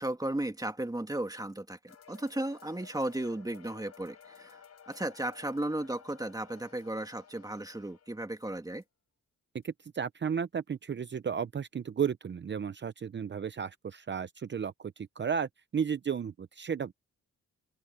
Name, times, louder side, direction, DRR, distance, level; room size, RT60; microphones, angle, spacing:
voice 1, 0.0-8.8, right 1 dB, 10° right, 2.6 m, -35 dB
sound 1, 1.9-8.5 8.8-8.9 9.6-9.7 10.0-10.1, left 7 dB, 60° left, 4.4 m, -56 dB
voice 2, 9.6-16.9, right 7 dB, 40° right, 0.7 m, -34 dB
open air
cardioid pair, 95°, 30 cm